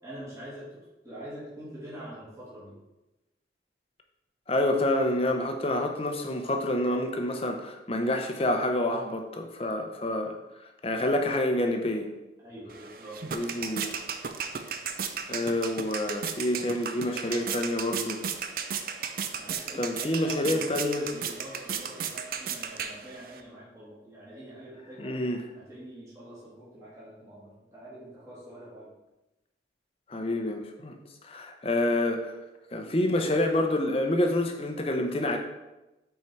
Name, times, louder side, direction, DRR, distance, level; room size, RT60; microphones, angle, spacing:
voice 1, 0.0-2.8 12.4-13.2 17.3-17.6 19.4-25.2 25.5-29.0, equal, 15° right, -9 dB, 1.9 m, -43 dB
voice 2, 4.5-10.4 10.8-12.1 13.3-13.9 15.3-18.2 19.8-21.0 25.0-25.4 30.1-31.0 31.2-32.4 32.7-35.4, left 1 dB, 30° left, 4 dB, 0.7 m, -28 dB
sound 1, 12.7-23.4, right 7 dB, 50° right, 0.5 m, -35 dB
6.1 x 4.5 x 4.5 m, 1.0 s
head